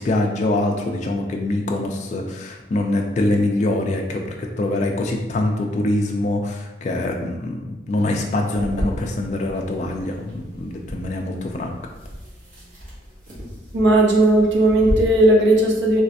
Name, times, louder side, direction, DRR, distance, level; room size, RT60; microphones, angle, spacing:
voice 1, 0.0-11.7, left 2 dB, 40° left, 2 dB, 0.3 m, -24 dB
sound 1, 8.5-14.9, equal, 45° right, 1.1 m, -34 dB
voice 2, 13.7-16.0, right 1 dB, 70° right, 0 dB, 0.7 m, -16 dB
3.1 x 3.1 x 2.7 m, 1.1 s
head